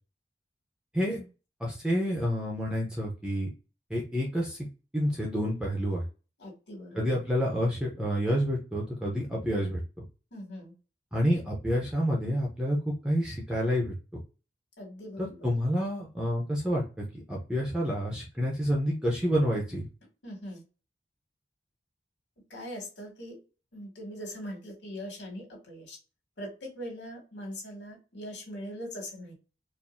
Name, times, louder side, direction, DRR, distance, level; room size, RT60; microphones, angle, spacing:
voice 1, 1.6-3.5 3.9-4.6 4.9-6.0 7.0-9.8 11.1-13.9 15.2-19.9, equal, 5° right, -3 dB, 0.8 m, -28 dB
voice 2, 6.4-7.1 10.3-10.7 14.8-15.5 20.2-20.6 22.5-23.4 23.7-26.0 26.4-29.3, equal, 90° left, 0 dB, 2.0 m, -41 dB
4.5 x 2.6 x 2.6 m, 0.32 s
head